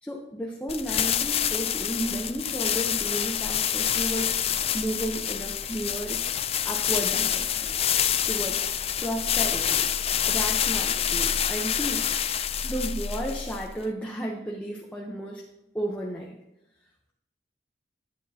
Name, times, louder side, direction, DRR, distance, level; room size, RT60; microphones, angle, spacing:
voice 1, 0.0-6.2 6.6-7.7 8.3-8.7 9.0-9.9 10.3-12.2 12.6-15.4 15.7-16.4, right 1 dB, 10° left, -2 dB, 1.0 m, -33 dB
sound 1, 0.7-13.8, left 9 dB, 35° left, 0.4 m, -27 dB
12.0 x 9.1 x 2.9 m, 0.88 s
head